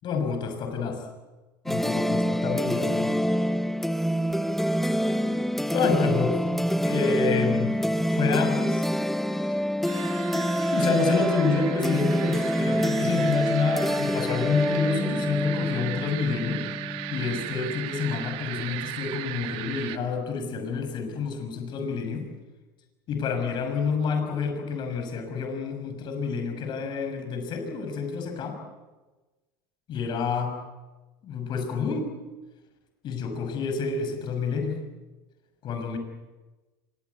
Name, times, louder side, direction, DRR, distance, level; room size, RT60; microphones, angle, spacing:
voice 1, 0.0-1.1 1.7-3.2 5.2-5.4 5.7-6.4 6.9-7.8 8.1-8.9 9.2-9.6 10.3-10.5 10.7-16.6 17.1-22.3 23.1-28.6 29.9-30.6 31.2-32.1 33.0-34.8 35.6-36.0, left 5 dB, 45° left, 6 dB, 6.3 m, -28 dB
tale of bouzouki, 1.7-18.3, equal, ahead, 0.8 m, -27 dB
sound 1, 9.8-20.0, right 16 dB, 60° right, 1.7 m, -37 dB
25.5 x 21.5 x 8.3 m, 1.2 s
supercardioid pair, 105°, 11 cm